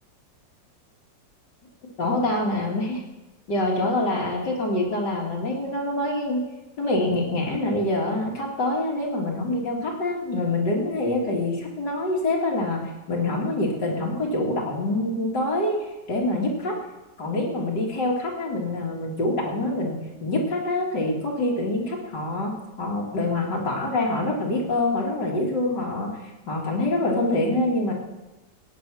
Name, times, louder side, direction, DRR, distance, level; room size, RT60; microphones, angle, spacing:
voice 1, 2.0-3.0 3.5-6.5 6.8-12.8 13.1-16.8 17.2-22.5 22.8-27.9, left 2 dB, 70° left, -2 dB, 3.1 m, -25 dB
17.0 x 9.0 x 6.3 m, 1.1 s
omnidirectional pair, 1.9 m